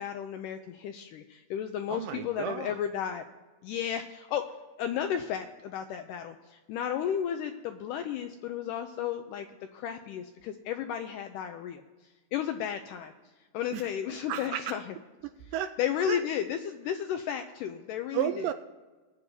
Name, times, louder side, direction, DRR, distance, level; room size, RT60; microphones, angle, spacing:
voice 1, 0.0-3.2 3.6-4.5 4.8-9.5 9.7-11.8 12.3-13.1 13.5-14.9 15.8-18.4, left 9 dB, 90° left, 7 dB, 1.8 m, -33 dB
voice 2, 1.9-2.8 13.7-13.9 14.3-14.8 15.2-15.8 16.1-16.2 18.1-18.5, right 11 dB, 85° right, 8 dB, 2.0 m, -33 dB
20.0 x 9.9 x 2.7 m, 1.3 s
omnidirectional pair, 4.3 m